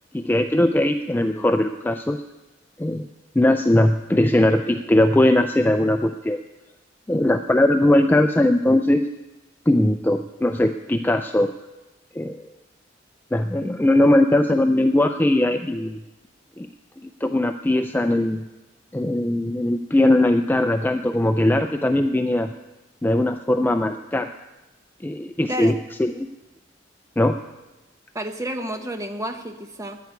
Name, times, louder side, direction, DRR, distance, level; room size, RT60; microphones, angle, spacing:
voice 1, 0.1-2.2 2.8-3.1 3.4-6.4 7.1-9.1 9.7-11.5 12.2-12.4 13.3-16.0 16.6-16.7 17.2-18.4 18.9-22.5 23.0-24.3 25.0-26.3 27.2-27.4, left 1 dB, 10° left, 7 dB, 0.4 m, -20 dB
voice 2, 28.1-30.0, right 1 dB, 15° right, 6 dB, 1.1 m, -30 dB
10.5 x 9.4 x 9.5 m, 1.1 s
head